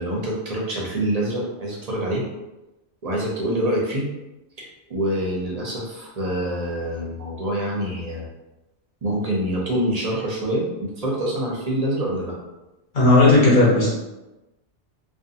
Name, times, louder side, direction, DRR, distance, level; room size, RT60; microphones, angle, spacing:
voice 1, 0.0-2.2 3.0-4.1 4.6-8.3 9.0-12.3, right 1 dB, 45° right, -3 dB, 0.6 m, -26 dB
voice 2, 12.9-13.9, left 2 dB, 45° left, -7 dB, 1.0 m, -14 dB
2.5 x 2.4 x 2.7 m, 1.0 s
omnidirectional pair, 1.2 m